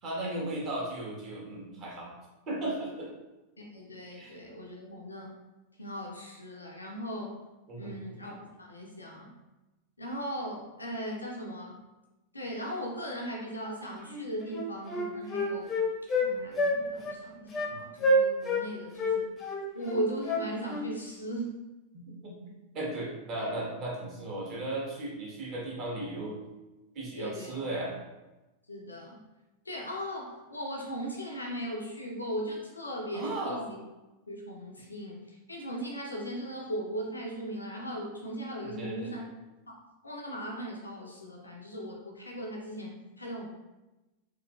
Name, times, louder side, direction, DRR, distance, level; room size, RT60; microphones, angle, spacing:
voice 1, 0.0-2.1 2.5-3.1 4.2-4.4 7.7-7.9 17.7-17.8 21.9-26.4 26.9-27.9 33.1-33.6 38.6-39.1, right 1 dB, 35° right, -4 dB, 1.1 m, -36 dB
voice 2, 3.6-5.3 5.8-7.4 7.7-9.3 10.0-11.8 12.3-15.7 16.2-19.3 19.7-21.5 27.2-27.6 28.7-29.2 29.6-33.8 34.3-39.3 40.0-43.5, equal, 80° left, -1 dB, 0.5 m, -38 dB
Wind instrument woodwind instrument, 14.1-14.2 14.5-16.3 16.6-16.8 17.0-17.2 17.5-17.7 18.0-18.7 19.0-20.9, left 1 dB, 20° left, 0.6 m, -28 dB
3.8 x 2.9 x 2.4 m, 1.1 s
figure-of-eight pair, 90°, 0 cm